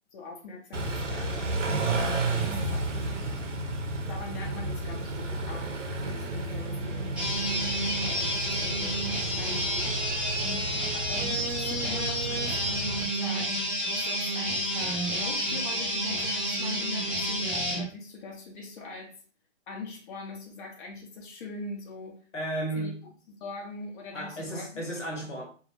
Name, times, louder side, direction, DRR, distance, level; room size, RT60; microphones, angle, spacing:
voice 1, 0.1-3.3 4.1-5.7 6.0-7.7 8.1-9.0 9.4-9.9 10.4-19.1 19.7-22.2 22.8-23.0 23.4-25.0, left 3 dB, 45° left, 0.7 m, -42 dB
Car / Idling / Accelerating revving vroom, 0.7-13.1, right 2 dB, 90° right, 0.6 m, -32 dB
sound 1, 7.2-17.8, equal, 5° right, 0.5 m, -30 dB
voice 2, 22.3-23.0 24.1-25.5, right 1 dB, 85° left, 0.9 m, -33 dB
2.2 x 2.0 x 2.8 m
figure-of-eight pair, 120°, 36 cm